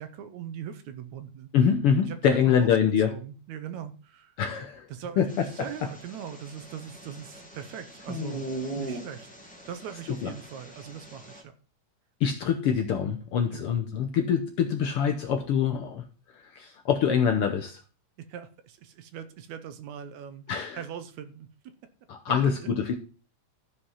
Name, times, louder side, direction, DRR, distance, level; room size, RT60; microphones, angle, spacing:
voice 1, 0.0-1.5 2.1-2.7 3.1-4.3 4.9-8.5 8.7-9.3 9.7-11.5 13.5-13.6 18.2-21.7 22.3-22.7, right 8 dB, 75° right, 10 dB, 2.2 m, -41 dB
voice 2, 1.5-3.1 4.4-4.9 5.2-5.7 10.2-10.3 12.2-16.1 16.4-17.8 20.5-20.8 22.1-22.9, left 7 dB, 70° left, 5 dB, 1.4 m, -25 dB
sound 1, 5.3-11.4, right 1 dB, 5° left, 1.5 m, -40 dB
13.0 x 5.1 x 5.6 m, 0.37 s
omnidirectional pair, 3.4 m